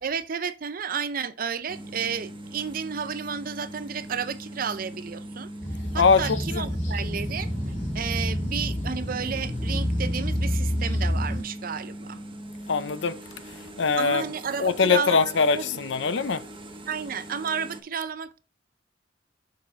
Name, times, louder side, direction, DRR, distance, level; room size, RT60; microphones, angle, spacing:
voice 1, 0.0-5.5 5.9-7.5 7.9-12.2 14.0-15.8 16.9-18.4, right 6 dB, 50° right, 0.5 m, -32 dB
sound 1, 1.7-17.8, right 1 dB, 30° right, 1.1 m, -41 dB
sound 2, 5.6-11.4, equal, 40° left, 2.2 m, -28 dB
voice 2, 5.9-6.7 12.7-13.2 13.5-14.2 14.6-16.4, left 5 dB, 75° left, 0.6 m, -23 dB
6.7 x 4.2 x 4.4 m
head